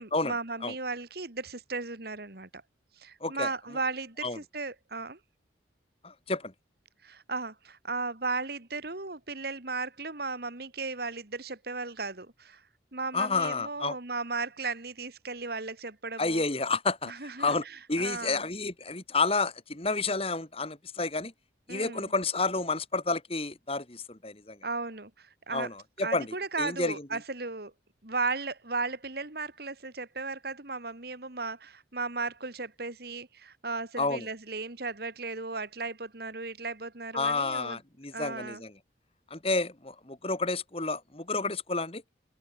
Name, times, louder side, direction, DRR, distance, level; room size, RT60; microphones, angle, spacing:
voice 1, 0.0-2.6 3.0-5.2 7.0-12.6 12.9-16.4 17.1-18.5 21.7-22.1 24.6-25.7 26.0-27.7 28.0-37.8 38.1-38.6, right 3 dB, 55° right, 2.1 m, -36 dB
voice 2, 6.0-6.5 13.1-14.0 16.2-17.1 17.4-17.6 17.9-21.3 21.7-24.6 25.5-26.3 26.6-26.9 34.0-34.2 37.1-38.7 39.3-42.0, left 3 dB, 30° left, 2.4 m, -30 dB
open air
head